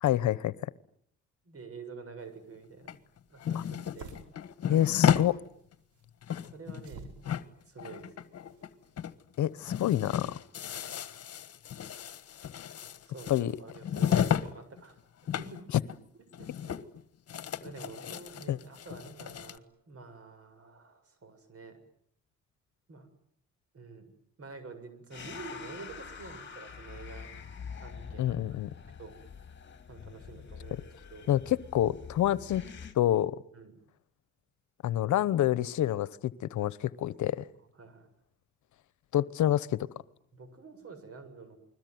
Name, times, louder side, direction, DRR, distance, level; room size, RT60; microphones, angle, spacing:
voice 1, 0.0-0.5 3.5-3.6 4.7-5.4 9.4-10.3 13.3-13.5 18.5-18.6 28.2-28.7 31.3-32.6 32.9-33.3 34.8-37.4 39.1-39.9, left 12 dB, 75° left, 18 dB, 1.1 m, -27 dB
voice 2, 1.4-3.0 3.3-4.1 4.7-4.9 6.4-7.1 7.7-8.3 10.7-11.0 13.0-15.0 15.3-16.0 16.4-16.8 17.6-21.8 22.9-23.1 23.7-24.1 24.4-27.3 27.8-28.4 29.0-29.2 29.9-31.3 32.3-32.4 33.5-33.8 37.7-38.1 40.3-41.6, right 4 dB, 50° right, 11 dB, 7.4 m, -48 dB
sound 1, 2.9-5.3 5.7-5.8 6.1-7.0 7.2-8.7 9.0-9.1 9.4-14.5 14.8-15.6 15.9-16.0 16.3-17.0 17.3-19.6, left 9 dB, 55° left, 1.6 m, -33 dB
sound 2, 3.0-9.0, right 4 dB, 75° right, 5.2 m, -53 dB
sound 3, 25.1-32.9, left 6 dB, 40° left, 2.7 m, -45 dB
29.0 x 21.5 x 9.5 m, 0.68 s
cardioid pair, 90°, 30 cm